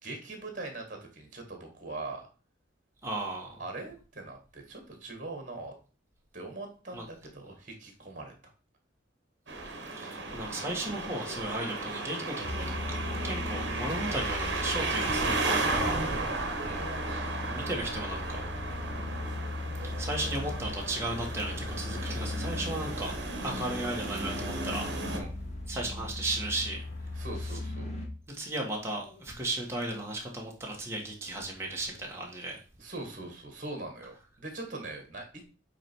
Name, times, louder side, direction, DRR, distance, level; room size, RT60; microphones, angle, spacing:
voice 1, 0.0-2.3 3.6-5.7 6.3-8.3 16.6-16.8 25.1-25.3 27.1-28.0 32.8-35.4, right 2 dB, 40° right, 4 dB, 1.8 m, -41 dB
voice 2, 3.0-3.6 6.9-7.0 9.9-12.8 13.2-16.0 16.9-17.0 17.5-18.5 19.8-23.1 23.4-25.2 25.7-26.8 27.4-27.6 28.3-32.6, right 1 dB, 15° right, -1 dB, 1.5 m, -35 dB
sound 1, 9.5-25.2, right 2 dB, 60° right, 1.2 m, -34 dB
sound 2, 12.4-28.1, left 2 dB, 35° left, 1.6 m, -38 dB
8.7 x 3.3 x 4.5 m, 0.35 s
head